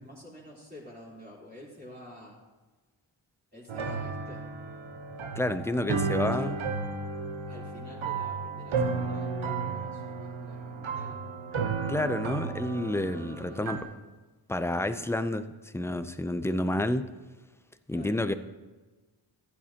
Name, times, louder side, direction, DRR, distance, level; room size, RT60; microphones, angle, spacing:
voice 1, 0.0-2.4 3.5-4.5 6.2-6.5 7.4-11.2 13.1-14.0 17.9-18.3, left 1 dB, 20° right, -6 dB, 3.6 m, -48 dB
sound 1, 3.7-13.8, right 4 dB, 70° right, 1.1 m, -33 dB
voice 2, 5.4-6.5 11.9-13.8 14.5-15.5 15.7-17.0 17.9-18.3, left 1 dB, 5° left, 10 dB, 0.4 m, -29 dB
15.0 x 10.0 x 2.9 m, 1.2 s
wide cardioid pair, 80°, 49 cm